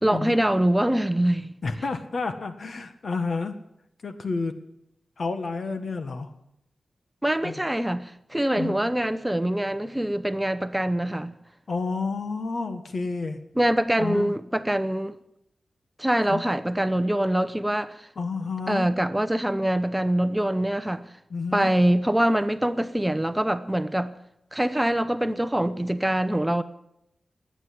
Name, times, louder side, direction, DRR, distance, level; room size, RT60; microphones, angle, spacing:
voice 1, 0.0-1.5 7.2-11.3 13.6-15.2 16.0-18.1 18.7-21.0 21.5-24.1 24.5-26.6, right 1 dB, 10° right, 0.7 m, -24 dB
voice 2, 1.6-3.6 4.0-4.5 5.2-6.3 7.4-7.6 8.5-8.8 11.7-13.4 14.0-14.3 16.3-16.4 18.1-18.9 21.3-21.7, left 4 dB, 65° left, 1.6 m, -30 dB
20.0 x 9.1 x 7.9 m
wide cardioid pair, 90°, 0 cm